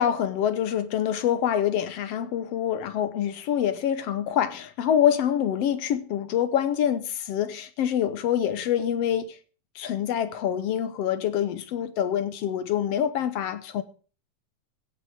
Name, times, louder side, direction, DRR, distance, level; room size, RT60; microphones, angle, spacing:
voice 1, 0.0-9.4 9.7-13.8, left 9 dB, 65° left, 1.8 m, -26 dB
16.0 x 6.8 x 6.4 m
omnidirectional pair, 3.4 m